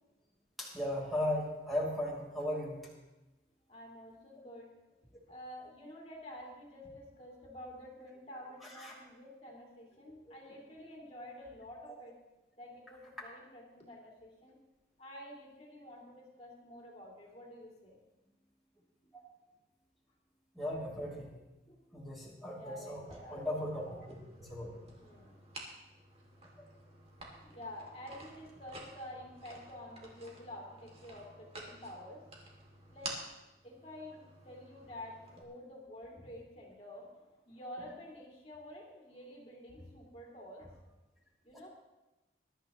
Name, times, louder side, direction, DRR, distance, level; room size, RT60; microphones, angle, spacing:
voice 1, 0.6-2.8 8.8-8.9 20.5-21.3 21.9-23.0 23.3-24.7, left 1 dB, ahead, -6 dB, 2.6 m, -36 dB
voice 2, 3.7-4.7 5.2-12.1 12.6-14.6 15.0-18.0 21.7-21.8 22.6-23.5 25.0-25.5 26.4-26.5 27.5-32.2 32.9-33.2 33.6-40.8 41.4-41.7, left 1 dB, 35° left, -2 dB, 2.6 m, -49 dB
sound 1, 22.9-35.4, right 2 dB, 35° right, 2.4 m, -52 dB
21.5 x 12.0 x 3.0 m, 1.0 s
head